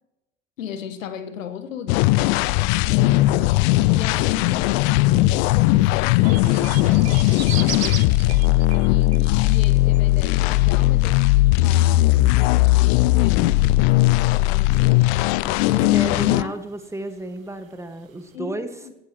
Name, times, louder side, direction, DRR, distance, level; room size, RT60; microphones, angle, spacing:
voice 1, 0.6-4.7 5.4-16.0 16.3-16.6 18.3-18.9, left 8 dB, 70° left, 10 dB, 1.5 m, -37 dB
sound 1, 1.9-16.4, left 19 dB, 50° left, 0.6 m, -18 dB
sound 2, 4.1-18.4, right 8 dB, 80° right, 1.0 m, -42 dB
sound 3, 6.2-9.7 9.9-10.0 10.4-10.5, right 13 dB, 40° right, 0.9 m, -40 dB
voice 2, 15.8-18.7, right 2 dB, 5° right, 8 dB, 1.8 m, -32 dB
19.0 x 15.5 x 3.2 m, 0.93 s
figure-of-eight pair, 65°, 40 cm